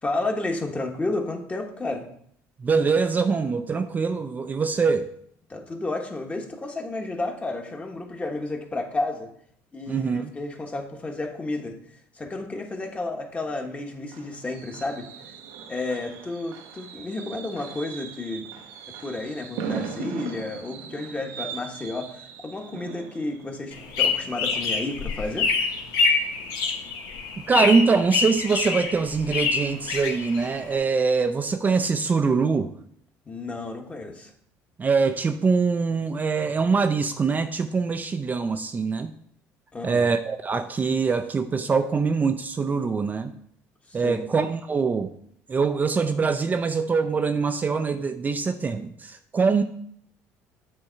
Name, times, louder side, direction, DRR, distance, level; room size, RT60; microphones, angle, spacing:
voice 1, 0.0-2.1 5.5-9.3 9.7-11.8 12.1-15.1 15.7-18.6 19.0-25.5 33.3-34.3 39.7-40.1 43.9-44.3, left 2 dB, 20° left, 3 dB, 1.2 m, -31 dB
voice 2, 2.6-5.1 9.9-10.3 27.5-32.7 34.8-39.1 39.8-43.3 43.9-45.1 45.5-49.6, right 4 dB, 25° right, 7 dB, 0.4 m, -23 dB
Fireworks, 13.5-25.2 25.5-25.8 26.1-26.2, right 7 dB, 85° right, 0.8 m, -39 dB
sound 1, 23.7-30.7, left 4 dB, 80° left, 1.0 m, -26 dB
7.6 x 3.6 x 5.5 m, 0.66 s
supercardioid pair, 90°, 6 cm